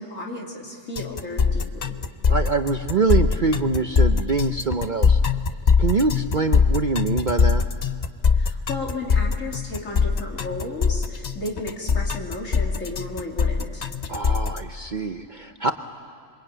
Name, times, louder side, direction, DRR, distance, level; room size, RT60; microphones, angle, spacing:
voice 1, 0.0-2.0 8.3-13.9, left 2 dB, 90° left, -1 dB, 3.2 m, -34 dB
sound 1, 1.0-14.6, left 5 dB, 40° left, 0.8 m, -21 dB
voice 2, 2.3-5.2 5.8-7.7 14.1-15.7, right 4 dB, 45° right, 7 dB, 0.8 m, -24 dB
27.0 x 23.5 x 9.0 m, 2.2 s
omnidirectional pair, 1.3 m